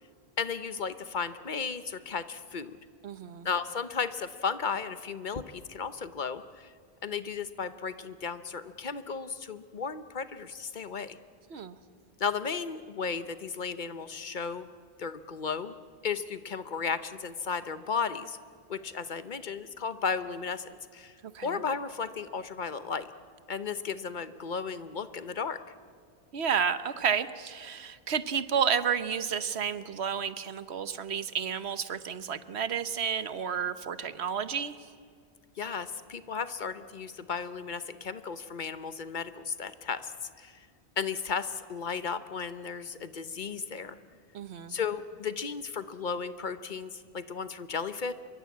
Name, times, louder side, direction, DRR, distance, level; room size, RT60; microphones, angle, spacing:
voice 1, 0.4-2.8 3.4-6.7 7.0-11.2 12.2-14.7 15.0-15.7 16.0-18.4 18.7-21.1 21.4-23.1 23.5-25.6 35.6-40.7 41.0-44.0 44.7-48.1, left 5 dB, 50° left, 12 dB, 1.0 m, -34 dB
voice 2, 3.0-3.5 11.5-11.8 21.3-21.6 26.3-34.7 44.3-44.7, right 7 dB, 70° right, 13 dB, 1.2 m, -31 dB
25.5 x 23.0 x 8.5 m, 2.2 s
omnidirectional pair, 1.1 m